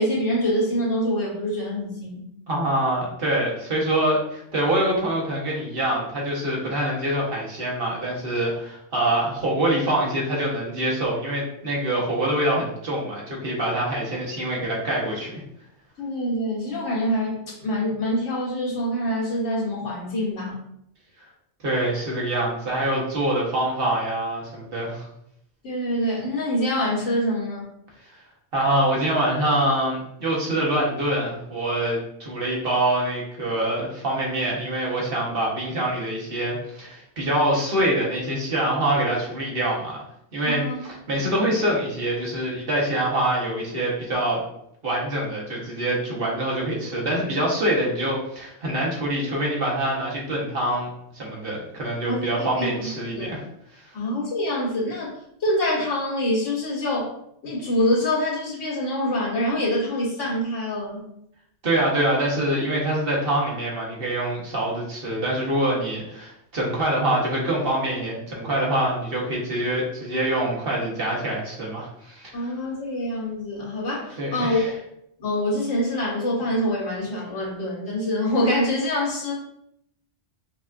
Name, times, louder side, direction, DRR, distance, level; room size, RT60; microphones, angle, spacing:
voice 1, 0.0-2.2 16.0-20.6 25.6-27.7 40.4-40.8 41.2-41.3 52.0-52.2 52.6-52.7 53.1-53.3 53.9-55.1 55.4-57.1 57.4-61.0 72.3-74.6 75.2-79.3, left 1 dB, 90° left, -6 dB, 1.8 m, -25 dB
voice 2, 2.5-15.4 21.6-25.1 28.5-40.0 40.3-44.4 44.8-50.9 51.1-53.4 61.6-72.5 74.2-74.7, right 1 dB, 50° right, -3 dB, 1.1 m, -25 dB
5.3 x 2.4 x 2.5 m, 0.75 s
omnidirectional pair, 1.2 m